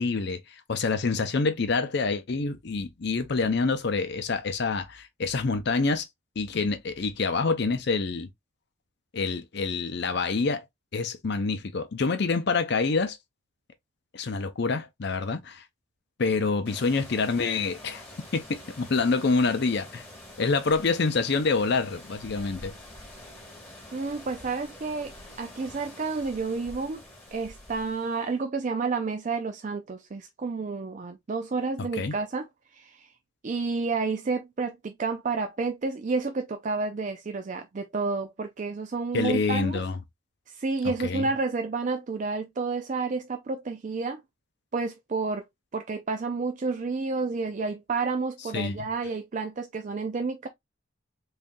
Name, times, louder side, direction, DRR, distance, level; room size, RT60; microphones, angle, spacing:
voice 1, 0.0-6.1 6.4-8.3 9.1-10.6 10.9-13.2 14.1-15.6 16.2-18.0 18.3-20.0 20.4-22.7 32.0-32.1 39.1-40.0 40.8-41.3 48.5-48.9, left 4 dB, 50° left, 0.6 m, -27 dB
sound 1, 16.6-28.3, left 1 dB, 10° left, 1.5 m, -46 dB
voice 2, 23.9-27.0 27.3-32.5 32.7-33.1 33.4-39.8 40.5-44.2 44.7-45.4 45.7-50.5, right 4 dB, 35° right, 0.4 m, -30 dB
3.7 x 3.2 x 2.5 m
head